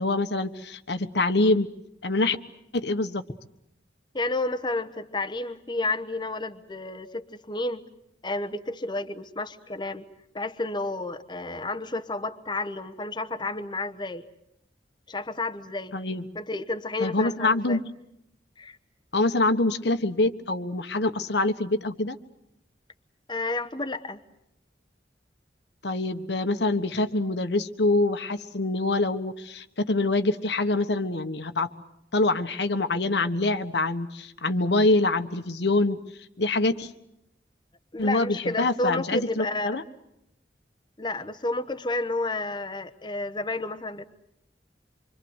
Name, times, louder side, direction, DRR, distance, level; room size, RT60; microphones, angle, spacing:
voice 1, 0.0-1.7 2.0-2.4 2.7-3.2 15.9-16.2 17.0-17.8 19.1-22.2 25.8-31.7 32.1-36.0 36.4-36.9 38.0-39.8, left 2 dB, 75° left, 8 dB, 1.3 m, -25 dB
voice 2, 4.1-7.8 8.2-10.0 10.3-14.2 15.1-16.0 16.3-17.8 18.6-18.8 23.3-24.2 37.9-39.8 41.0-44.1, left 2 dB, 25° left, 7 dB, 1.0 m, -31 dB
26.5 x 24.5 x 8.1 m, 0.81 s
head